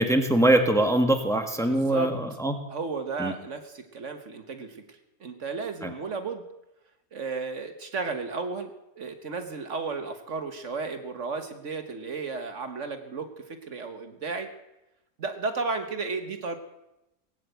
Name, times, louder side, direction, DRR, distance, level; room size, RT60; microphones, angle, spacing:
voice 1, 0.0-2.5 3.2-3.3 5.8-5.9, right 1 dB, ahead, 5 dB, 1.5 m, -22 dB
voice 2, 1.6-2.2 2.7-6.4 7.1-13.3 13.7-14.5 15.2-16.6, right 4 dB, 60° right, 7 dB, 1.5 m, -34 dB
18.5 x 9.2 x 8.0 m, 0.92 s
omnidirectional pair, 1.5 m